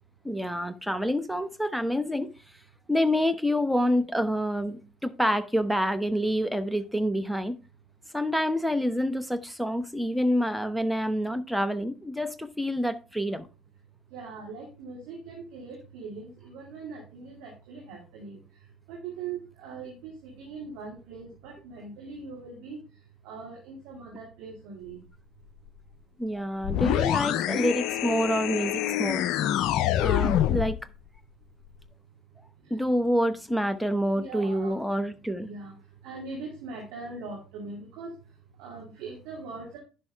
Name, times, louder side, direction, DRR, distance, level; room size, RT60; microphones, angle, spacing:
voice 1, 0.2-2.3 2.9-7.6 8.1-13.5 26.2-29.2 30.0-30.8 32.7-35.5, equal, ahead, 0.9 m, -27 dB
voice 2, 14.1-18.4 18.9-22.8 23.2-25.0 32.6-32.8 34.1-34.7 35.4-35.8 36.0-38.1 38.6-39.8, right 4 dB, 65° right, 2.3 m, -41 dB
sound 1, 26.6-30.8, left 12 dB, 60° left, 0.4 m, -26 dB
10.5 x 5.7 x 3.3 m
figure-of-eight pair, 55°, 0 cm